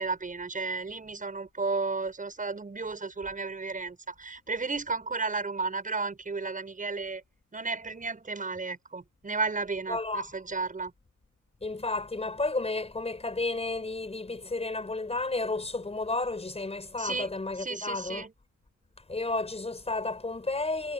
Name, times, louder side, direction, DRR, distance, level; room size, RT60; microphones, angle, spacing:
voice 1, 0.0-7.2 7.5-10.9 17.0-17.3 17.6-18.3, right 4 dB, 25° right, 7.4 m, -33 dB
voice 2, 9.9-10.3 11.6-18.3 19.1-20.9, left 3 dB, 20° left, 5.5 m, -32 dB
cardioid pair, 90°, 30 cm